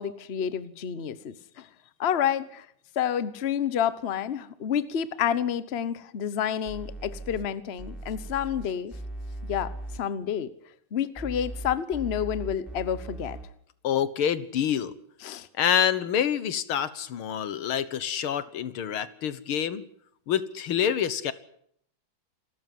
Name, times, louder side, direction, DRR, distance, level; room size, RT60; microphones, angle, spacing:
voice 1, 0.0-1.4 2.0-2.7 2.9-8.9 9.4-9.7 10.0-10.5 10.9-13.4 15.2-15.5, left 9 dB, 40° left, 15 dB, 1.0 m, -29 dB
sound 1, 6.7-7.5 7.8-10.0 11.2-13.4, right 1 dB, ahead, 3.8 m, -38 dB
voice 2, 13.8-14.9 15.6-19.8 20.3-21.3, left 9 dB, 85° left, 15 dB, 2.1 m, -27 dB
27.5 x 13.5 x 9.5 m, 0.68 s
omnidirectional pair, 2.3 m